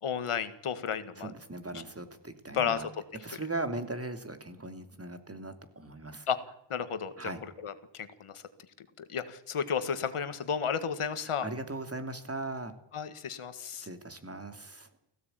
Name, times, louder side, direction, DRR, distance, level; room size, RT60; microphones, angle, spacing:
voice 1, 0.0-1.3 1.7-1.8 2.5-2.9 6.3-6.4 6.7-7.3 7.6-8.4 9.0-11.5 12.9-13.9, left 7 dB, 85° left, 11 dB, 1.8 m, -33 dB
voice 2, 1.2-2.9 3.2-6.3 7.2-7.4 11.4-12.7 13.8-14.9, right 2 dB, 30° right, 8 dB, 2.8 m, -39 dB
18.0 x 16.0 x 9.2 m, 0.79 s
wide cardioid pair, 80°, 50 cm